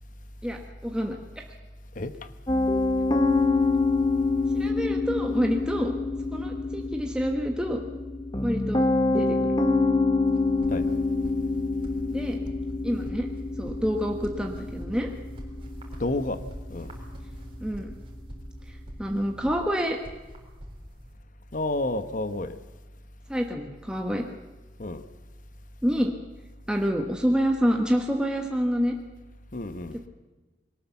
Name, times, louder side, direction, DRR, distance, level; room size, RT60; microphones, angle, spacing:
voice 1, 0.4-1.2 4.5-5.9 6.3-7.8 8.4-8.9 9.1-9.5 12.1-12.4 12.8-13.3 13.6-15.1 17.6-18.0 18.7-20.0 23.3-24.2 25.8-26.1 26.7-28.9 29.9-30.1, equal, 5° right, 1.2 m, -27 dB
voice 2, 1.9-2.3 10.7-11.0 16.0-16.4 16.7-16.9 21.5-22.6 24.8-25.0 29.5-30.0, left 2 dB, 45° left, 1.1 m, -30 dB
Piano, 2.5-19.6, left 3 dB, 25° left, 1.3 m, -27 dB
sound 1, 10.2-21.1, equal, 30° right, 3.7 m, -45 dB
21.5 x 18.0 x 7.1 m
head